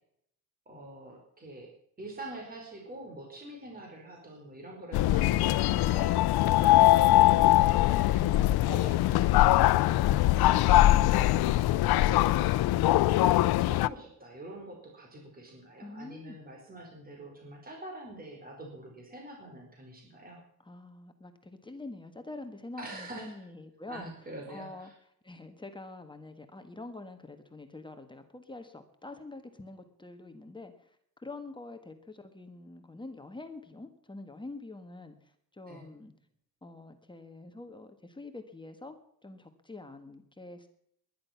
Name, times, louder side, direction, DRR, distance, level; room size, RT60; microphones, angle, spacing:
voice 1, 0.7-1.7 2.0-6.3 6.6-20.4 22.8-23.4 23.9-24.9 35.7-35.9, right 1 dB, 25° right, 1 dB, 4.6 m, -45 dB
sound 1, 4.9-13.9, left 15 dB, 90° left, 0.7 m, -22 dB
voice 2, 15.8-16.4 20.6-24.1 24.4-24.9 25.2-36.1 36.6-39.0 39.2-40.7, left 2 dB, 15° left, 6 dB, 1.5 m, -46 dB
19.5 x 11.5 x 5.9 m, 0.70 s
cardioid pair, 140°, 37 cm